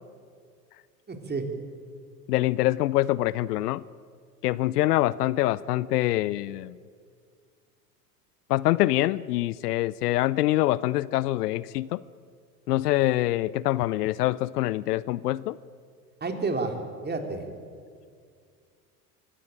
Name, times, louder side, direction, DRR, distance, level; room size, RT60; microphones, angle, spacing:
voice 1, 1.1-1.5 16.2-16.8 17.0-17.5, right 3 dB, 20° right, 4 dB, 3.5 m, -30 dB
voice 2, 2.3-3.8 4.4-6.8 8.5-12.0 12.7-15.6, left 16 dB, 75° left, 20 dB, 0.7 m, -25 dB
24.0 x 17.0 x 9.0 m, 2.1 s
hypercardioid pair, 85°, 47 cm